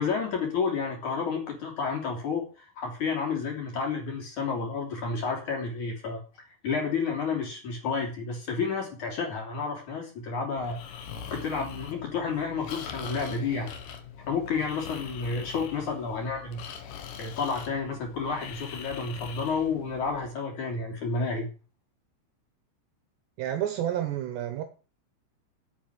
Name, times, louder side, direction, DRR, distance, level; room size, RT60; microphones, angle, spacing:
voice 1, 0.0-6.2 6.6-10.8 11.3-13.7 14.3-16.6 17.2-21.5, left 5 dB, 40° left, 4.0 m, -30 dB
Breathing, 10.6-20.3, left 7 dB, 75° left, 1.9 m, -42 dB
voice 2, 23.4-24.6, right 11 dB, 70° right, 2.8 m, -30 dB
8.8 x 8.2 x 8.1 m
omnidirectional pair, 5.8 m